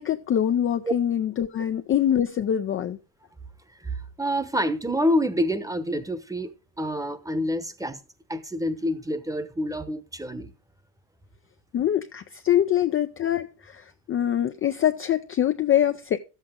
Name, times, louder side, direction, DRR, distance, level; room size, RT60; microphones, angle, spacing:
voice 1, 0.0-3.0 11.7-16.2, left 10 dB, 30° left, 0.4 m, -24 dB
voice 2, 3.8-6.5 6.8-8.0 8.3-10.5, equal, 5° right, 0.9 m, -27 dB
12.0 x 8.1 x 3.8 m
supercardioid pair, 105°, 46 cm